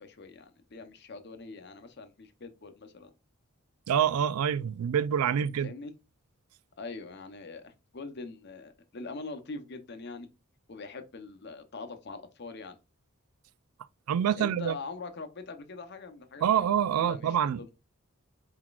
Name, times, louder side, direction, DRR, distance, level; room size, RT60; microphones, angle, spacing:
voice 1, 0.0-3.1 5.6-5.9 6.8-10.3 10.7-12.8 14.4-16.4 16.9-17.7, left 3 dB, 50° left, 0.7 m, -43 dB
voice 2, 3.9-5.7 14.1-14.7 16.4-17.7, right 8 dB, 90° right, 0.3 m, -26 dB
4.4 x 3.9 x 2.3 m
head